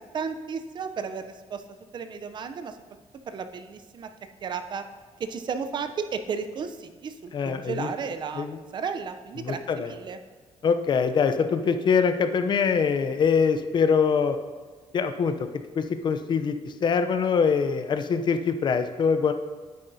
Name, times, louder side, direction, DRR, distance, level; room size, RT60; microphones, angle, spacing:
voice 1, 0.0-1.6 1.9-2.8 3.3-4.1 4.4-4.8 5.2-10.2, right 6 dB, 40° right, 9 dB, 0.5 m, -33 dB
voice 2, 7.3-7.9 8.4-8.6 9.4-9.9 10.6-14.4 14.9-15.3 15.7-19.3, left 6 dB, 40° left, 9 dB, 0.5 m, -23 dB
10.0 x 8.4 x 2.7 m, 1.5 s
cardioid pair, 140°, 11 cm